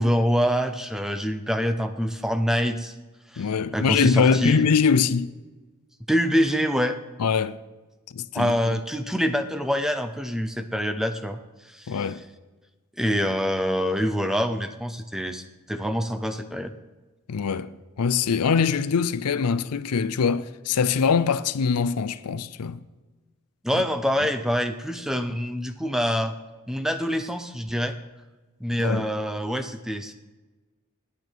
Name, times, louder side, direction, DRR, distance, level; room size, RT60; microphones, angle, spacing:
voice 1, 0.0-2.9 3.3-4.7 6.1-7.0 8.3-11.4 11.7-12.1 13.0-16.7 23.6-26.3 26.7-28.0 28.6-30.1, equal, ahead, 0.6 m, -25 dB
voice 2, 3.4-5.3 7.2-7.6 8.1-8.8 11.9-12.2 17.3-17.7 18.0-22.8 28.8-29.1, left 6 dB, 90° left, 0.5 m, -23 dB
10.0 x 9.3 x 4.5 m
head